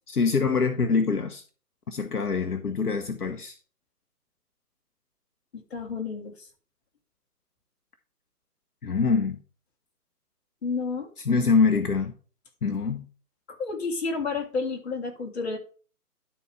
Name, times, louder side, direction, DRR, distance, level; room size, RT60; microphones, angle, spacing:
voice 1, 0.1-1.4 1.9-3.6 8.8-9.4 11.2-12.1 12.6-13.1, left 5 dB, 75° left, 1.0 m, -24 dB
voice 2, 5.5-6.5 10.6-11.1 13.5-15.6, left 4 dB, 40° left, 2.0 m, -31 dB
11.0 x 4.2 x 4.7 m
figure-of-eight pair, 150°, 47 cm